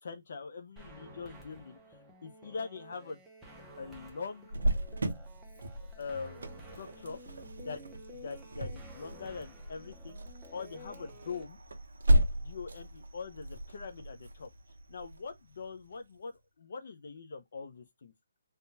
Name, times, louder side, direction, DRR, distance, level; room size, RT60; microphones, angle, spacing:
voice 1, 0.0-3.2 3.8-4.6 5.8-7.2 7.6-10.2 10.5-11.6 12.4-14.5 14.9-18.1, left 5 dB, 45° left, 0.6 m, -43 dB
sound 1, 0.8-11.4, equal, 5° right, 0.5 m, -52 dB
Cricket, 4.5-16.0, equal, 85° right, 0.9 m, -34 dB
3.5 x 2.3 x 2.7 m
hypercardioid pair, 175°, 0 cm